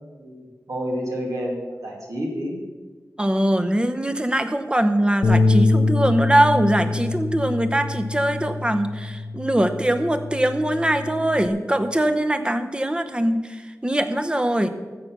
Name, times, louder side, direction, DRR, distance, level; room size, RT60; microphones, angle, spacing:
voice 1, 0.0-2.6, equal, 65° right, -2 dB, 2.5 m, -30 dB
voice 2, 3.2-14.7, right 1 dB, 15° right, 9 dB, 0.9 m, -22 dB
Bass guitar, 5.2-11.5, left 3 dB, 75° left, 0.8 m, -24 dB
14.0 x 6.8 x 6.1 m, 1.4 s
wide cardioid pair, 95°, 6 cm